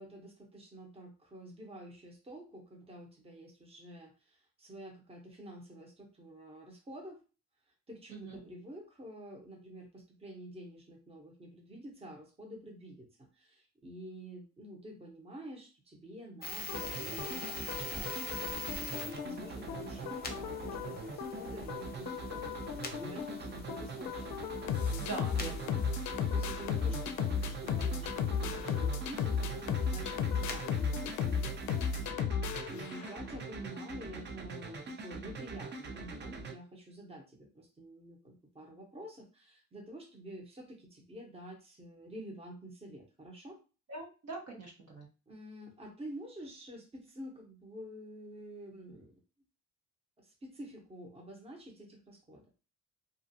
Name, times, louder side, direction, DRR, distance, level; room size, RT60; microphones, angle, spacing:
voice 1, 0.0-7.2 7.9-25.9 26.3-43.6 45.3-49.1 50.2-52.4, right 1 dB, 20° right, 0 dB, 0.9 m, -49 dB
sound 1, 16.4-32.1, left 3 dB, 30° left, 0.7 m, -46 dB
sound 2, 16.7-33.3, left 6 dB, 70° left, 0.4 m, -35 dB
sound 3, 16.7-36.5, right 3 dB, 35° right, 0.5 m, -43 dB
voice 2, 25.0-25.7 43.9-45.1, right 2 dB, 60° right, 0 dB, 1.1 m, -42 dB
2.5 x 2.3 x 2.7 m, 0.33 s
cardioid pair, 90°, 30 cm